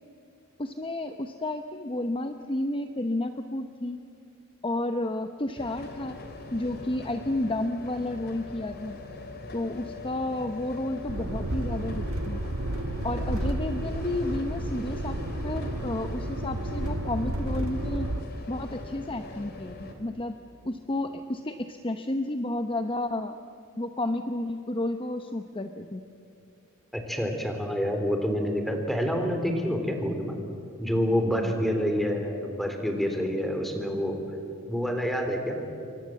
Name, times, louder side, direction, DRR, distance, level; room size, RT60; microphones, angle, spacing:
voice 1, 0.6-4.0 4.6-6.2 6.5-9.0 9.5-12.4 13.0-18.1 18.5-20.3 20.6-23.4 23.8-26.0, left 1 dB, 25° left, 7 dB, 0.8 m, -31 dB
sound 1, 5.6-19.9, left 1 dB, 50° left, 3.2 m, -41 dB
sound 2, 11.1-18.2, right 1 dB, 80° right, 1.3 m, -32 dB
voice 2, 26.9-30.4 30.8-34.2 34.7-35.6, equal, ahead, 4 dB, 3.5 m, -27 dB
28.5 x 24.0 x 7.7 m, 2.6 s
head